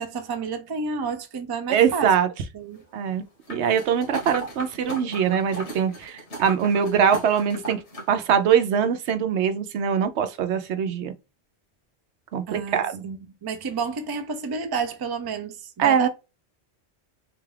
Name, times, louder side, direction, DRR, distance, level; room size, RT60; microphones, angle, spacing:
voice 1, 0.0-2.1 2.5-2.8 12.5-16.1, right 5 dB, 35° right, 0.4 m, -30 dB
voice 2, 1.7-2.3 2.9-3.2 3.5-7.8 8.1-11.1 12.3-13.0 15.8-16.1, right 8 dB, 80° right, 0.9 m, -22 dB
sound 1, 3.5-8.1 8.5-8.6, right 1 dB, 85° left, 1.8 m, -37 dB
4.0 x 2.3 x 3.2 m
omnidirectional pair, 1.1 m